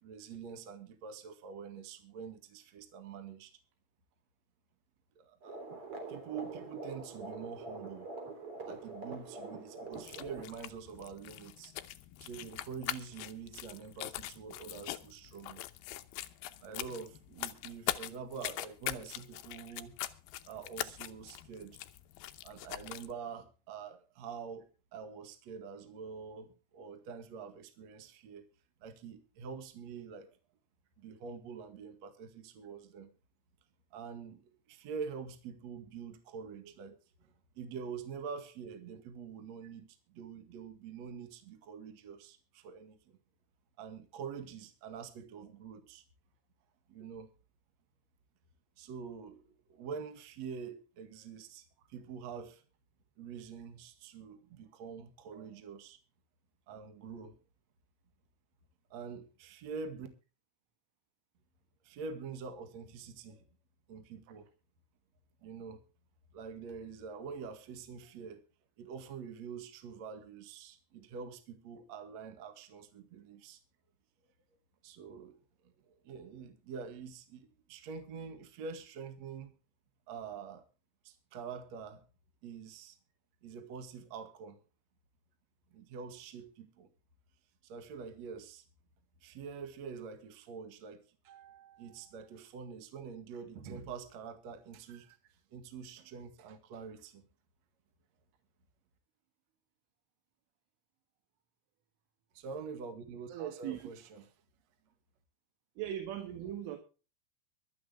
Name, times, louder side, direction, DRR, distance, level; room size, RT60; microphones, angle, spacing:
voice 1, 0.0-3.5 5.2-5.6 6.1-8.1 8.6-11.7 12.2-15.6 16.6-20.0 20.4-21.8 22.4-28.5 28.8-30.4 31.0-33.1 33.9-34.4 34.7-43.2 43.8-46.0 46.9-47.3 48.8-52.6 53.2-56.0 56.7-57.4 58.9-60.1 61.8-63.4 63.9-64.5 65.4-65.8 66.3-68.4 68.8-73.6 74.8-79.5 80.1-80.6 81.0-82.0 82.4-83.0 83.4-84.6 85.7-86.9 87.6-88.6 89.2-95.2 95.5-97.2 102.3-104.3, right 6 dB, 50° right, 2.4 m, -46 dB
sound 1, 5.4-10.5, right 3 dB, 30° right, 3.6 m, -44 dB
sound 2, 9.9-23.1, left 14 dB, 85° left, 2.2 m, -42 dB
voice 2, 103.3-103.9 105.8-106.8, right 11 dB, 80° right, 4.3 m, -39 dB
24.5 x 8.7 x 3.4 m
omnidirectional pair, 5.6 m